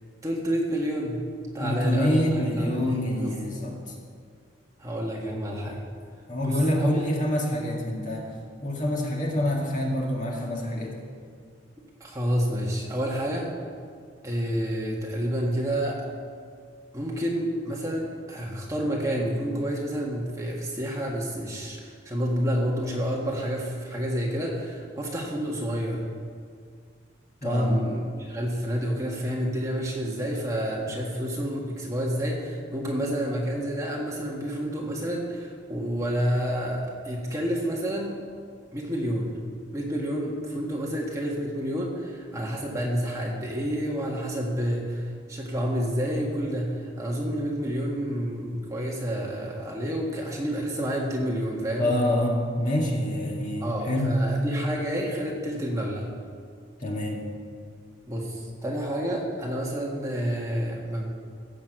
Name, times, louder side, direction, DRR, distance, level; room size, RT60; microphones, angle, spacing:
voice 1, 0.2-1.2 1.5-3.3 4.8-5.8 6.4-7.0 12.0-13.5 14.2-16.1 16.9-26.0 27.4-38.2 38.7-39.4 39.7-51.9 53.6-56.1 58.1-61.1, equal, 15° right, -2 dB, 1.6 m, -29 dB
voice 2, 1.6-3.7 6.3-8.3 8.6-10.9 27.4-27.7 51.8-54.2 56.8-57.2, left 1 dB, 40° left, -1 dB, 2.1 m, -26 dB
15.5 x 6.5 x 7.7 m, 2.1 s
head